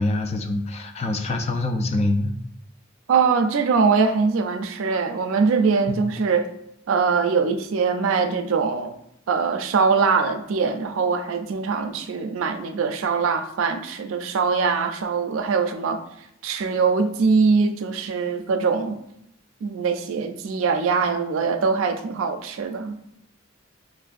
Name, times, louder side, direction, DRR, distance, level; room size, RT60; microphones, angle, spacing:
voice 1, 0.0-2.3 5.9-6.1, left 2 dB, 30° left, 5 dB, 0.3 m, -25 dB
voice 2, 3.1-6.5 6.9-8.9 9.3-16.0 16.4-19.0 19.6-23.0, right 5 dB, 75° right, 8 dB, 0.4 m, -22 dB
4.4 x 2.6 x 2.4 m, 0.77 s
head